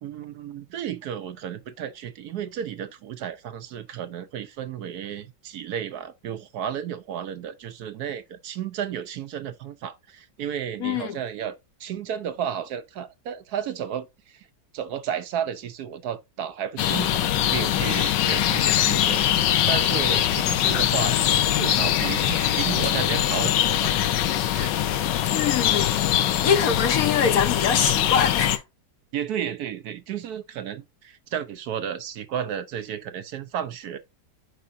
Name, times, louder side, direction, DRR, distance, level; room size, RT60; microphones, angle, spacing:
voice 1, 0.0-11.5 11.8-14.5 14.7-19.4 19.7-24.0 24.5-24.8 29.1-34.0, right 9 dB, 70° right, 1.0 m, -33 dB
voice 2, 10.8-11.2 25.3-26.0 26.4-28.6, left 7 dB, 60° left, 1.1 m, -23 dB
sound 1, 16.8-28.6, left 11 dB, 85° left, 1.4 m, -22 dB
8.4 x 4.8 x 2.6 m
omnidirectional pair, 1.9 m